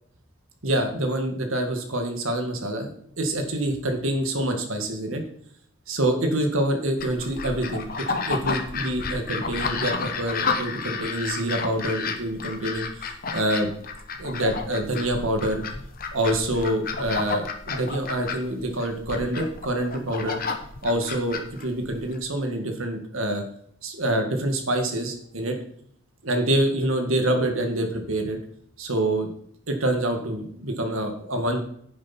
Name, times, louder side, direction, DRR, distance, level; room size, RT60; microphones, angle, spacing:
voice 1, 0.6-2.9 3.2-5.2 5.9-13.7 14.2-15.6 16.1-20.4 20.8-23.4 23.8-25.6 26.2-28.4 28.8-29.3 29.7-31.6, right 1 dB, 75° right, 4 dB, 1.9 m, -26 dB
sound 1, 7.0-22.2, left 4 dB, 45° left, 1.0 m, -31 dB
9.8 x 7.6 x 4.4 m, 0.67 s
head